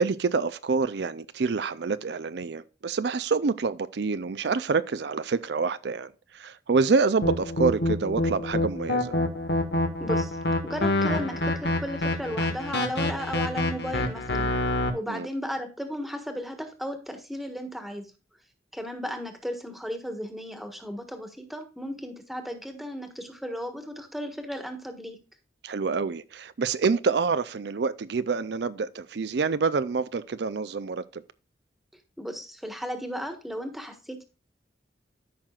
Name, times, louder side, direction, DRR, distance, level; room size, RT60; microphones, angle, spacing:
voice 1, 0.0-9.1 15.1-15.3 25.6-31.2, right 4 dB, 70° right, 0.5 m, -27 dB
sound 1, 7.2-14.9, left 2 dB, 70° left, 1.7 m, -26 dB
voice 2, 10.0-10.3 10.6-14.6 14.9-18.1 18.7-25.2 32.2-34.2, equal, ahead, 1.4 m, -35 dB
13.5 x 5.9 x 2.4 m
head